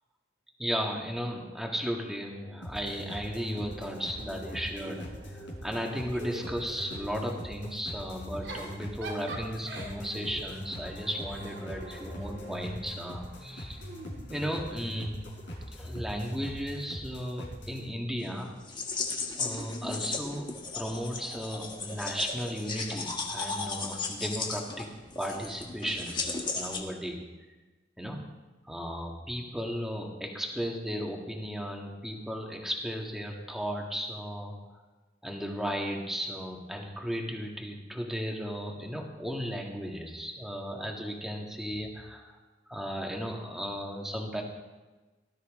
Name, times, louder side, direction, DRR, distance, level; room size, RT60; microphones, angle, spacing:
voice 1, 0.6-5.1 5.3-13.8 14.3-15.2 15.8-18.6 19.4-20.5 20.7-24.9 25.2-27.2 28.0-28.2 28.7-34.6 35.2-42.4 42.7-44.4, equal, ahead, 0 dB, 1.8 m, -35 dB
sound 1, 2.6-17.9, equal, 80° left, 3.9 m, -42 dB
Giggle / Chuckle chortle, 3.8-5.4 5.9-7.3 8.2-12.7 13.8-15.2, right 2 dB, 75° right, 3.0 m, -45 dB
sound 2, 18.2-26.8, left 4 dB, 25° left, 1.5 m, -36 dB
18.5 x 12.5 x 3.7 m, 1.2 s
head